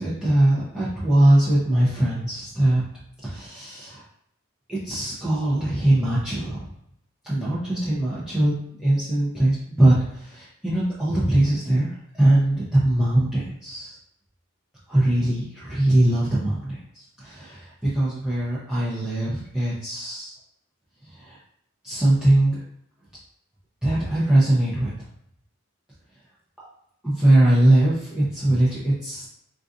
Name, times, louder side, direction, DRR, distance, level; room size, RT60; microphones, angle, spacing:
voice 1, 0.0-2.8 3.2-4.0 4.7-6.6 7.2-11.9 12.2-14.0 14.9-20.3 21.1-21.4 21.8-22.6 23.8-24.9 27.0-29.3, right 1 dB, 5° right, -10 dB, 0.6 m, -21 dB
3.9 x 2.5 x 2.5 m, 0.73 s
head